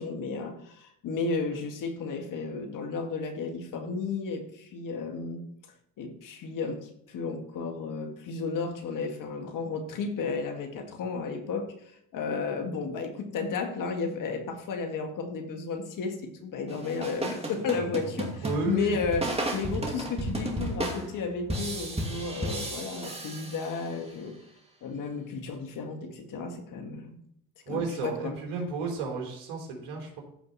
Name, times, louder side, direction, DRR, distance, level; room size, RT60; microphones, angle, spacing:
voice 1, 0.0-5.4 6.0-11.7 12.1-24.3 24.8-27.2 27.7-28.3, left 4 dB, 50° left, 5 dB, 2.0 m, -33 dB
sound 1, 16.7-24.1, right 1 dB, 15° right, 2.4 m, -34 dB
voice 2, 18.4-19.0 27.7-30.2, right 4 dB, 70° right, 1 dB, 3.7 m, -33 dB
15.0 x 5.2 x 4.2 m, 0.72 s
supercardioid pair, 85°, 40 cm